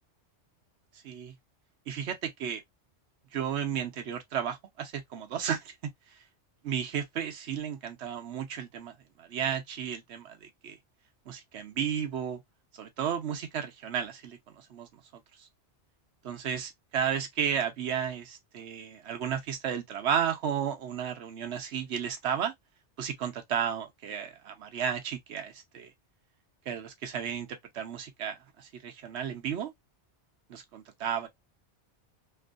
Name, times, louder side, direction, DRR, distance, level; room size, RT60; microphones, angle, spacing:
voice 1, 1.0-1.3 1.9-2.6 3.3-6.2 6.6-10.8 11.3-12.4 12.7-15.5 16.2-22.5 23.0-25.9 26.7-29.7 30.5-31.3, right 8 dB, 75° right, 1.0 m, -33 dB
3.0 x 2.5 x 2.3 m
omnidirectional pair, 1.2 m